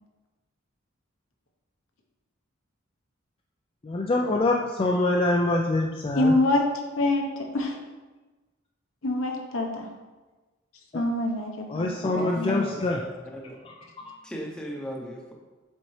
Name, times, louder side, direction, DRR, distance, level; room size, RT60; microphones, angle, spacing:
voice 1, 3.8-6.4 11.7-13.0 14.0-14.1, left 2 dB, 25° left, -1 dB, 0.4 m, -25 dB
voice 2, 6.2-6.6 7.0-7.8 9.0-9.9 10.9-12.6, left 2 dB, 80° left, 2 dB, 1.0 m, -25 dB
voice 3, 11.9-13.5 14.0-15.3, equal, 5° left, -2 dB, 0.8 m, -37 dB
7.4 x 4.1 x 3.2 m, 1.2 s
head